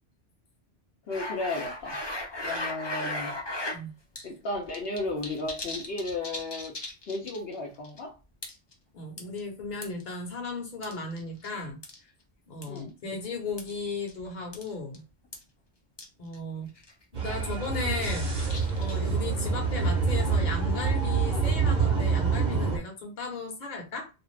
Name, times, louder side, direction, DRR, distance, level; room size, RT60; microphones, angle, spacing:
voice 1, 1.1-2.0 2.4-3.3 4.2-6.8 7.1-8.2 12.6-12.9, left 2 dB, 65° left, 0.9 m, -34 dB
sound 1, 1.1-3.8 4.2-4.3 4.5-7.5 7.8-8.0 8.4-8.7 9.2-10.0 10.8-11.5 11.8-12.0 12.6-12.8 13.6-13.7 14.1-14.2 14.5-14.7 14.9-15.0 15.3-15.4 16.0-16.1 16.3-16.4 16.8-17.0 17.5-19.1, left 1 dB, 30° left, 0.6 m, -36 dB
voice 2, 8.9-11.8 12.5-15.0 16.2-16.7 17.1-18.3 18.8-24.1, left 3 dB, 45° left, 1.0 m, -36 dB
sound 2, 17.1-22.8, right 5 dB, 45° right, 0.8 m, -26 dB
2.5 x 2.4 x 3.2 m
omnidirectional pair, 1.1 m